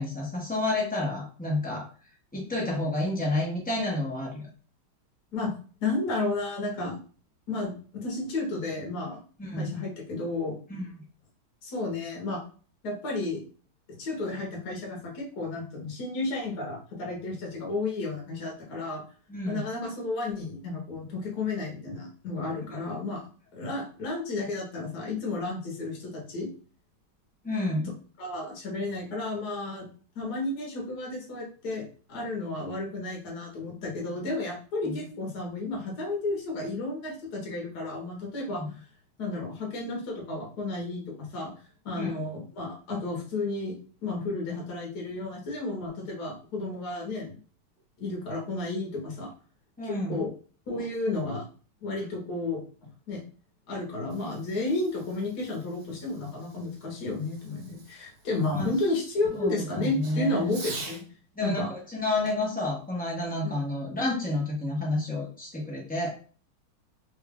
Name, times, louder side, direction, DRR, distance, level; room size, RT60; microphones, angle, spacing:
voice 1, 0.0-1.9 2.3-4.5 9.4-9.7 10.7-10.9 19.3-19.7 27.4-27.9 34.9-35.0 38.5-38.7 41.9-42.2 49.8-50.2 58.5-58.7 59.3-60.5 61.4-66.1, left 2 dB, 15° left, -4 dB, 0.3 m, -30 dB
voice 2, 5.8-7.0 7.5-9.2 9.5-10.6 11.6-12.4 12.8-13.4 14.0-19.0 19.5-23.3 23.5-26.5 28.2-29.9 30.1-38.8 39.2-41.5 41.8-43.7 44.0-47.3 48.0-49.3 50.1-50.3 50.7-51.5 51.8-52.6 53.1-53.2 53.7-61.0 61.4-61.7 63.4-63.6, left 2 dB, 55° left, -1 dB, 1.4 m, -32 dB
Fireworks, 53.9-61.1 62.2-63.9, right 3 dB, 65° right, 1.6 m, -47 dB
3.6 x 2.3 x 3.5 m, 0.41 s
omnidirectional pair, 2.3 m